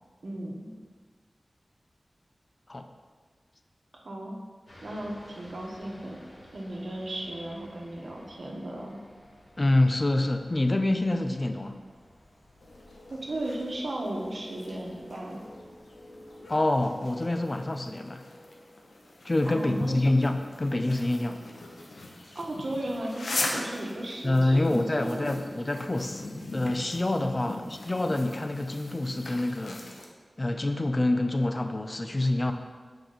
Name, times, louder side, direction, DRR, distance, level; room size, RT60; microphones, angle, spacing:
voice 1, 0.2-0.7 3.9-4.4 4.8-6.2 6.5-9.0 13.1-15.4 19.5-20.0 22.3-25.4 27.5-27.6, right 1 dB, 70° right, -1 dB, 1.1 m, -35 dB
sound 1, 4.6-17.7, left 1 dB, 65° left, 1.5 m, -55 dB
voice 2, 9.6-11.8 16.5-18.2 19.2-21.4 24.2-29.9 30.4-32.5, left 2 dB, 40° left, 7 dB, 0.5 m, -26 dB
sound 2, 12.6-30.1, left 2 dB, 80° left, 0.8 m, -41 dB
6.0 x 4.8 x 4.0 m, 1.5 s
cardioid pair, 45°, 0 cm